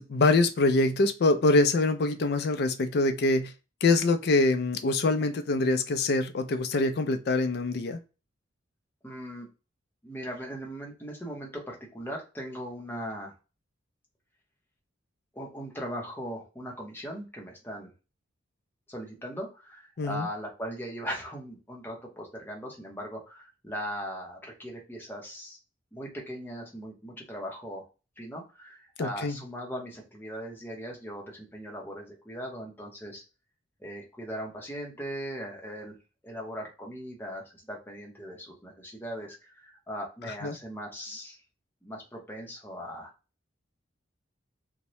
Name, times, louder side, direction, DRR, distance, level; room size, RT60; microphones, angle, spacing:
voice 1, 0.0-3.5 3.8-8.0 20.0-20.3 29.0-29.4 40.4-40.6, left 2 dB, 50° left, 8 dB, 0.4 m, -24 dB
voice 2, 9.0-9.5 10.0-13.3 15.3-17.9 18.9-25.6 25.9-27.8 28.2-33.2 33.8-36.0 36.2-41.4 41.8-43.1, equal, 10° left, -1 dB, 0.7 m, -39 dB
2.7 x 2.1 x 3.0 m, 0.31 s
head